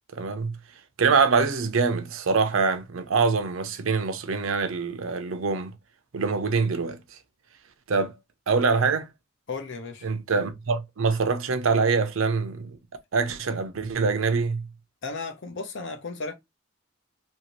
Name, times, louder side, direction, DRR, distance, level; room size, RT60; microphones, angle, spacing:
voice 1, 0.1-0.6 1.0-5.7 6.1-7.0 7.9-8.1 8.5-9.1 10.0-12.8 13.1-14.7, right 4 dB, 85° right, 0.6 m, -24 dB
voice 2, 9.5-10.1 15.0-16.3, left 4 dB, 65° left, 0.8 m, -34 dB
2.8 x 2.7 x 2.9 m
head